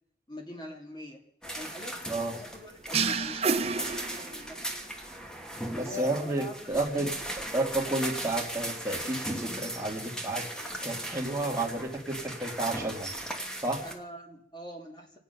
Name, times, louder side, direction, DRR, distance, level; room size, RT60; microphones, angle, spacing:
voice 1, 0.3-1.2 1.5-2.0 2.3-4.7 5.7-7.1 13.8-15.2, left 2 dB, 25° left, 2 dB, 2.3 m, -43 dB
sound 1, 1.4-13.9, right 1 dB, 5° left, 1.2 m, -38 dB
sound 2, 2.9-4.7, right 5 dB, 35° right, 0.7 m, -29 dB
voice 2, 5.8-7.1 7.5-13.1 13.6-13.8, right 2 dB, 15° right, 0 dB, 2.0 m, -31 dB
25.0 x 9.1 x 5.7 m, 0.72 s
head